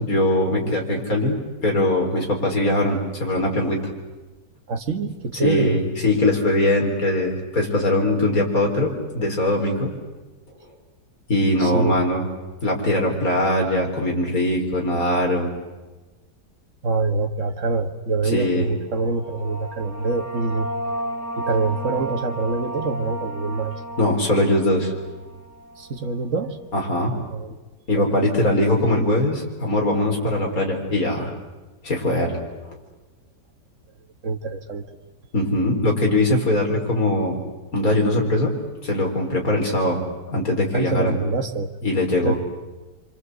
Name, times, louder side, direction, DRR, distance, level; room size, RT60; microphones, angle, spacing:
voice 1, 0.0-3.8 5.4-9.9 11.3-12.2 12.6-15.5 18.3-18.7 24.0-24.9 26.7-27.1 27.9-31.3 31.8-32.4 35.3-37.4 37.7-38.5 38.8-40.0 40.3-41.1 41.8-42.4, left 1 dB, 55° left, 0 dB, 5.1 m, -21 dB
voice 2, 4.7-5.8 11.6-12.0 16.8-20.7 21.4-23.8 25.8-26.6 27.3-27.6 27.9-28.5 34.2-34.8 40.7-41.7 42.2-42.3, right 3 dB, 45° right, 5 dB, 1.9 m, -25 dB
sound 1, 19.0-26.2, right 1 dB, 10° left, 6.3 m, -33 dB
27.0 x 25.5 x 8.1 m, 1.2 s
omnidirectional pair, 1.8 m